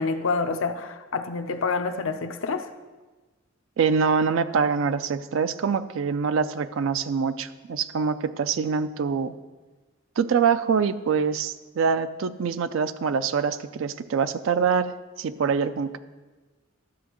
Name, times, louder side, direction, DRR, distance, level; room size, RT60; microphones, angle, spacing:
voice 1, 0.0-2.7, left 4 dB, 85° left, 7 dB, 0.6 m, -27 dB
voice 2, 3.8-9.3 10.2-16.0, right 6 dB, 75° right, 12 dB, 0.4 m, -25 dB
12.5 x 7.0 x 3.0 m, 1.2 s
head